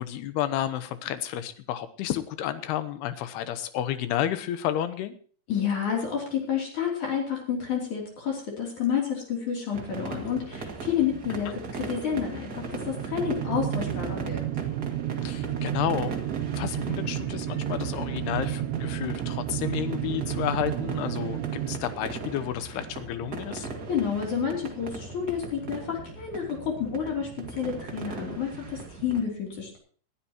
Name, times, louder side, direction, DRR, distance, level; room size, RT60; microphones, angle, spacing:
voice 1, 0.0-5.1 11.5-11.6 15.2-16.2 16.6-21.4 21.7-23.7, left 11 dB, 80° left, 12 dB, 2.9 m, -31 dB
voice 2, 5.5-14.4 23.9-29.8, left 7 dB, 50° left, 0 dB, 4.3 m, -30 dB
sound 1, 9.7-29.2, right 3 dB, 60° right, 1.0 m, -38 dB
sound 2, 12.4-21.8, right 12 dB, 90° right, 2.8 m, -31 dB
20.0 x 12.5 x 3.0 m, 0.44 s
omnidirectional pair, 4.7 m